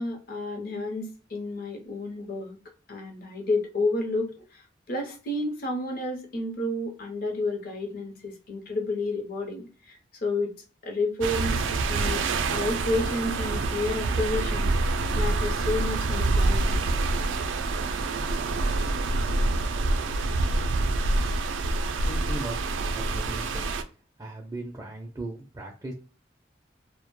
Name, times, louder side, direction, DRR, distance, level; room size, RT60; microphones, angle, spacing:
voice 1, 0.0-2.6 2.9-10.5 10.8-12.2 12.5-17.1 18.2-18.3, left 2 dB, 50° left, 3 dB, 0.6 m, -31 dB
sound 1, 11.2-23.8, right 2 dB, 90° right, 0.3 m, -26 dB
voice 2, 21.9-23.7 24.2-25.9, right 2 dB, 15° right, 0 dB, 0.4 m, -38 dB
2.1 x 2.0 x 2.9 m, 0.38 s
head